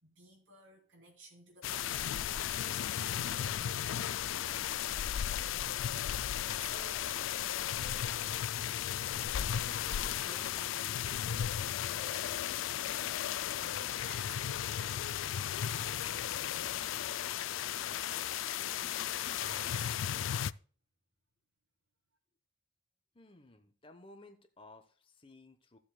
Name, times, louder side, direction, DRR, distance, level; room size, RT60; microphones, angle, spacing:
voice 1, 0.0-2.1 3.0-4.2 6.0-6.2 6.5-7.2 7.7-8.3 9.0-11.3 11.8-12.6 13.6-15.1 15.7-16.9 17.7-18.5 18.7-19.9, right 1 dB, 75° right, 3.8 m, -55 dB
sound 1, 1.6-20.5, left 10 dB, 85° left, 0.4 m, -35 dB
sound 2, 1.9-9.2, right 3 dB, 45° right, 2.8 m, -66 dB
voice 2, 23.1-25.8, left 2 dB, 25° left, 0.9 m, -57 dB
15.0 x 7.4 x 2.2 m
head